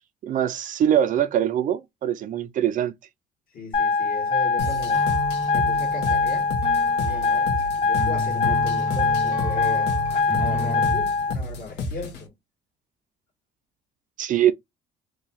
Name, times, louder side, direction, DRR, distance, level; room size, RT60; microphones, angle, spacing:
voice 1, 0.2-2.9 14.2-14.5, right 10 dB, 50° right, 0.4 m, -22 dB
voice 2, 3.5-5.0 5.5-6.5 7.0-12.3, left 3 dB, 60° left, 1.5 m, -37 dB
sound 1, 3.7-11.3, left 4 dB, 30° left, 0.6 m, -23 dB
sound 2, 4.6-12.3, left 2 dB, 80° left, 0.9 m, -32 dB
sound 3, 4.9-11.1, left 1 dB, 10° right, 0.6 m, -33 dB
2.7 x 2.2 x 4.1 m
cardioid pair, 110°, 17 cm